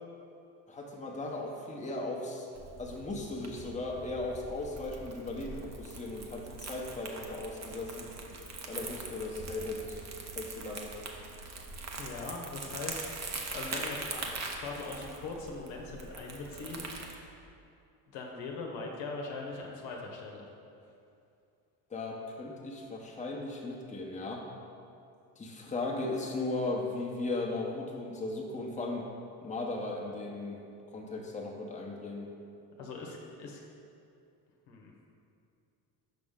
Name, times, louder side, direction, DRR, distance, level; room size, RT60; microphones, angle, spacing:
voice 1, 0.7-2.5 2.8-8.1 8.7-10.0 10.3-10.9 21.9-24.5 25.4-29.0 29.4-30.6 30.9-32.3, left 2 dB, 15° left, -1 dB, 1.0 m, -37 dB
Crumpling crinkling, 2.5-17.2, right 3 dB, 35° right, 0.9 m, -42 dB
voice 2, 12.0-16.9 18.1-20.5 32.8-33.6 34.7-34.9, left 3 dB, 65° left, 0 dB, 1.1 m, -41 dB
5.9 x 5.2 x 3.7 m, 2.6 s
hypercardioid pair, 60°, 49 cm